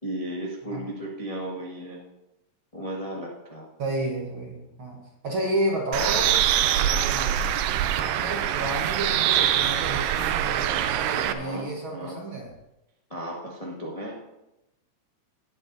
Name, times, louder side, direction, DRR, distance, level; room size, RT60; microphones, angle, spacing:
voice 1, 0.0-2.0 2.7-3.7 8.5-8.6 11.2-12.2 13.1-14.2, right 1 dB, 30° left, -4 dB, 0.6 m, -35 dB
voice 2, 3.8-7.4 8.0-12.5, right 1 dB, 50° right, -1 dB, 1.7 m, -31 dB
Bird, 5.9-11.3, right 11 dB, 85° right, 2.2 m, -24 dB
19.0 x 8.1 x 2.7 m, 0.92 s
omnidirectional pair, 3.8 m